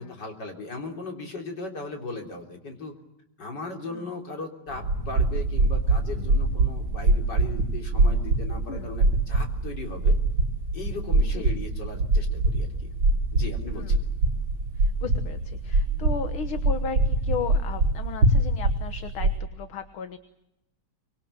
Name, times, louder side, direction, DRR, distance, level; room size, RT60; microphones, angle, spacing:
voice 1, 0.0-3.0 3.4-10.2 10.7-12.9 13.3-14.1, left 3 dB, 50° left, 3 dB, 4.2 m, -37 dB
sound 1, 4.7-19.4, right 2 dB, 65° right, 3.3 m, -24 dB
voice 2, 13.7-14.0 14.8-20.2, left 6 dB, 75° left, 9 dB, 2.2 m, -35 dB
25.0 x 22.5 x 8.8 m, 0.88 s
omnidirectional pair, 2.4 m